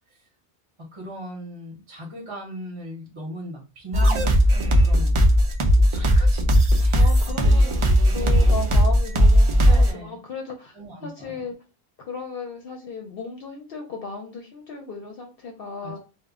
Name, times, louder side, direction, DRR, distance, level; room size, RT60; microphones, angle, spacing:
voice 1, 0.8-5.1 5.8-6.4 6.8-7.2 7.4-8.9 9.6-10.2 10.8-11.5 15.8-16.0, right 1 dB, 30° right, -1 dB, 0.7 m, -38 dB
sound 1, 3.9-9.9, equal, 55° right, 0.3 m, -17 dB
voice 2, 6.9-11.5 12.1-16.0, left 4 dB, 65° left, 1 dB, 0.8 m, -35 dB
2.1 x 2.0 x 3.5 m, 0.30 s
omnidirectional pair, 1.1 m